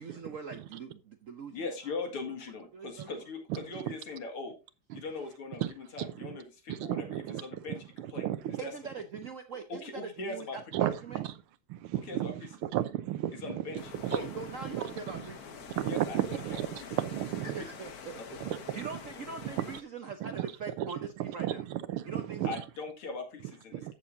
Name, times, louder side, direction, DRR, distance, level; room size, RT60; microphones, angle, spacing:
voice 1, 0.0-1.6 1.8-2.0 2.7-3.3 8.6-11.2 14.1-15.7 17.4-18.2 18.7-21.6 22.0-22.6, right 5 dB, 65° right, 0.8 m, -42 dB
voice 2, 1.5-4.6 4.9-7.8 8.1-8.3 8.6-8.7 9.7-10.6 12.1-12.3 13.4-13.8 14.1-14.3 15.9-16.6 18.3-18.4 22.4-23.9, left 3 dB, 90° left, 3.0 m, -40 dB
voice 3, 3.5-3.9 4.9-5.0 5.6-6.3 6.7-8.6 10.7-11.3 11.7-14.3 14.7-14.9 15.8-17.6 18.4-18.9 19.4-19.8 20.2-20.5 20.8-20.9 21.2-22.6 23.7-23.9, right 12 dB, 80° right, 1.6 m, -34 dB
sound 1, 13.8-19.8, left 6 dB, 50° left, 1.3 m, -46 dB
14.0 x 6.8 x 2.7 m
omnidirectional pair, 2.4 m